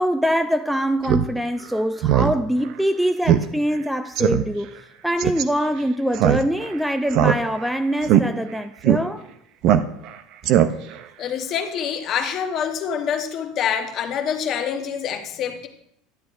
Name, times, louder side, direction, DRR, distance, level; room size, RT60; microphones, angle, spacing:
voice 1, 0.0-9.3, equal, ahead, 0.4 m, -23 dB
Speech synthesizer, 1.0-1.3 1.6-1.7 2.0-2.3 2.7-2.8 3.3-3.4 3.7-3.8 4.2-4.4 5.2-5.4 6.1-6.7 7.1-7.7 8.0-8.2 8.8-9.0 9.6-10.1 10.4-11.0, right 10 dB, 60° right, 0.5 m, -18 dB
voice 2, 11.2-15.7, left 8 dB, 45° left, 1.0 m, -26 dB
11.5 x 8.0 x 2.5 m
supercardioid pair, 115°, 0 cm